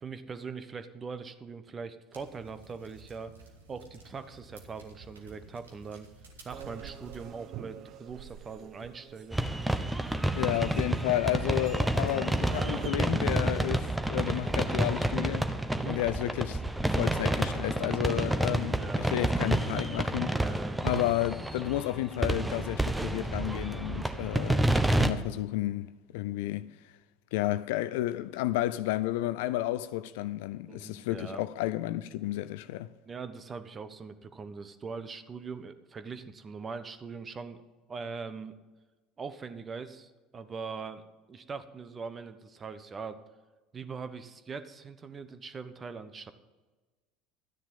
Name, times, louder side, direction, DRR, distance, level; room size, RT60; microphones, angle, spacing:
voice 1, 0.0-3.3 3.7-6.1 6.4-9.4 15.7-16.0 18.7-19.1 20.2-20.8 30.7-31.4 33.0-37.6 37.9-38.5 39.2-41.0 41.3-43.2 43.7-46.3, right 5 dB, 30° right, 1.1 m, -41 dB
sound 1, 2.1-7.3, right 3 dB, 80° right, 1.8 m, -53 dB
sound 2, 6.5-12.9, right 10 dB, 50° right, 0.7 m, -46 dB
sound 3, 9.3-25.1, right 1 dB, 10° right, 1.0 m, -29 dB
voice 2, 10.3-15.5 15.9-16.6 16.9-20.4 20.8-24.7 25.0-26.7 27.3-32.9, left 15 dB, 65° left, 0.5 m, -32 dB
13.0 x 10.0 x 5.4 m
figure-of-eight pair, 65°, 0 cm